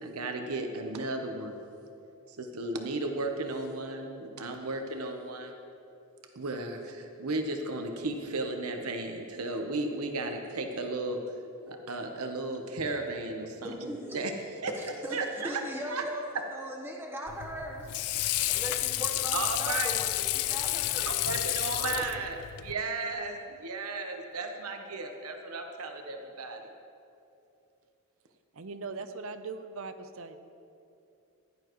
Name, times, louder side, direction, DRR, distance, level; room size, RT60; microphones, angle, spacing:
voice 1, 0.0-1.6 2.3-5.6 6.3-11.2 11.7-14.3 14.6-15.6 15.9-16.1 19.3-20.0 20.9-26.6, right 2 dB, 85° right, 4 dB, 1.0 m, -35 dB
voice 2, 13.6-14.2 15.0-15.2 15.4-16.2 16.5-17.9 18.5-20.1 20.3-21.1 22.0-22.1, equal, 10° right, 0 dB, 1.1 m, -38 dB
Water / Sink (filling or washing), 17.3-22.7, left 15 dB, 90° left, 0.4 m, -31 dB
voice 3, 28.5-30.4, right 4 dB, 65° right, 9 dB, 0.7 m, -40 dB
16.0 x 11.0 x 3.1 m, 2.7 s
head